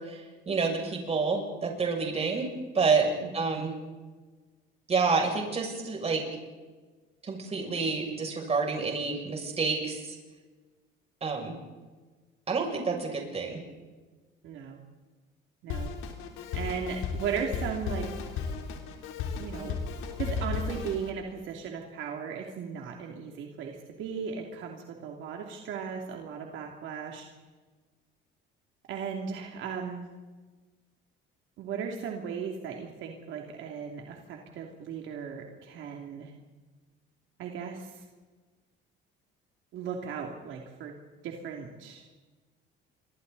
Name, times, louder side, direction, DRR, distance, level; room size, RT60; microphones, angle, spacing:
voice 1, 0.0-2.5 2.7-3.7 4.9-6.2 7.2-10.2 11.2-11.6 12.5-13.6, right 4 dB, 30° right, 1 dB, 7.1 m, -28 dB
voice 2, 3.2-3.7 14.4-14.8 15.6-15.9 16.5-18.4 19.4-19.8 20.2-27.2 28.9-30.1 31.6-36.3 37.4-38.0 39.7-40.9 41.2-42.0, right 6 dB, 70° right, 1 dB, 3.0 m, -37 dB
Drum kit, 15.7-21.1, left 5 dB, 90° left, 3.7 m, -35 dB
29.0 x 25.0 x 4.2 m, 1.3 s
cardioid pair, 125°, 21 cm